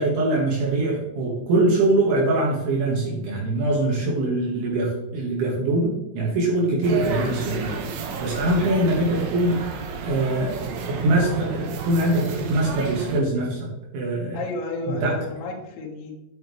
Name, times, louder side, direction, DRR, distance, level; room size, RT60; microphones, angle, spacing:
voice 1, 0.0-7.7 8.2-9.6 10.0-10.6 10.8-13.7 13.9-14.4 15.0-15.2, right 2 dB, 70° right, -4 dB, 4.1 m, -23 dB
sound 1, 6.8-13.2, right 4 dB, 90° right, 1.9 m, -31 dB
voice 2, 14.3-16.1, left 3 dB, 70° left, -2 dB, 3.5 m, -31 dB
9.2 x 9.2 x 3.3 m, 0.90 s
omnidirectional pair, 5.7 m